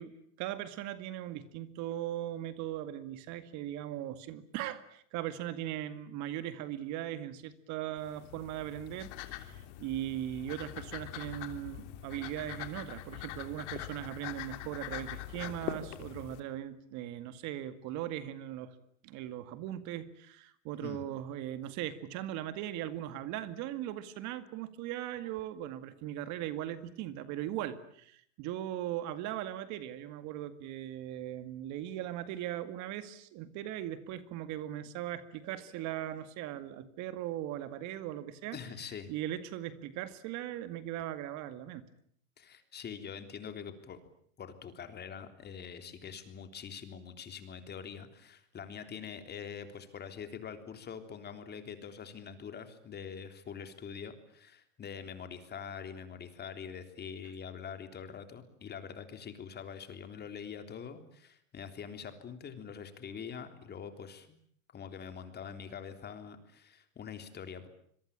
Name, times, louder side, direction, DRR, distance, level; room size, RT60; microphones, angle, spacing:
voice 1, 0.0-18.7 19.0-38.6 39.1-41.9, right 12 dB, 50° right, 12 dB, 2.1 m, -39 dB
sound 1, 8.0-16.4, left 13 dB, 65° left, 3.3 m, -43 dB
voice 2, 38.5-39.1 42.4-44.0 44.4-64.3 64.7-67.7, left 7 dB, 25° left, 8 dB, 3.5 m, -44 dB
27.0 x 23.0 x 8.8 m, 0.63 s
supercardioid pair, 125°, 38 cm